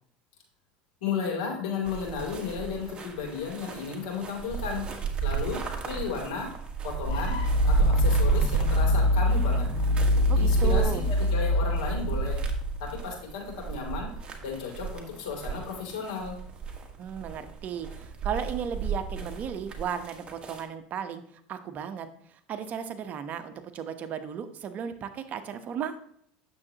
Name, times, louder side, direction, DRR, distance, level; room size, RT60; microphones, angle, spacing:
voice 1, 1.0-4.9 5.2-6.5 6.8-7.4 7.7-9.7 10.3-12.4 12.8-16.4, left 5 dB, 90° left, 0 dB, 3.0 m, -34 dB
sound 1, 1.9-20.6, right 6 dB, 25° right, 1.6 m, -33 dB
sound 2, 7.0-13.0, left 1 dB, 70° left, 3.5 m, -24 dB
voice 2, 10.3-11.0 17.0-17.9 18.2-21.2 21.5-22.1 22.5-25.9, right 7 dB, 40° right, 9 dB, 1.0 m, -34 dB
9.5 x 7.3 x 2.9 m, 0.67 s
supercardioid pair, 110°, 4 cm